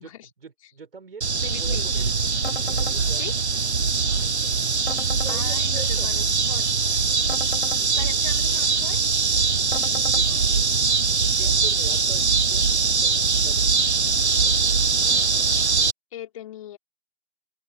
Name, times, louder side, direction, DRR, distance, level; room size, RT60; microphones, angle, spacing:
voice 1, 0.0-2.3 2.6-3.9 4.5-4.7 5.2-6.1 6.8-7.0 7.8-8.2 8.5-8.7 10.1-10.7 11.4-14.9, right 5 dB, 60° right, 5.8 m, -45 dB
sound 1, 1.2-15.9, right 5 dB, 80° right, 1.0 m, -22 dB
voice 2, 1.4-2.0 3.2-3.3 5.3-6.7 8.0-9.0 9.7-10.1 16.1-16.8, left 12 dB, 30° left, 3.5 m, -40 dB
sound 2, 2.4-3.0 4.9-5.4 7.3-7.8 9.7-10.2, left 5 dB, 80° left, 1.0 m, -35 dB
open air
figure-of-eight pair, 140°, 33 cm